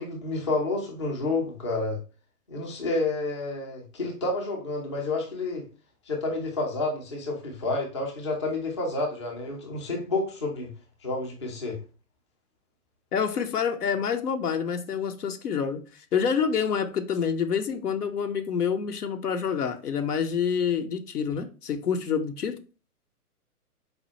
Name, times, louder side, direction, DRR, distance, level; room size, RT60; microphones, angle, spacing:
voice 1, 0.0-2.0 2.5-5.6 6.1-10.7 11.0-11.8, left 2 dB, 20° left, 0.4 m, -29 dB
voice 2, 13.1-22.6, left 7 dB, 75° left, 0.6 m, -27 dB
4.1 x 2.1 x 2.8 m
figure-of-eight pair, 120°, 46 cm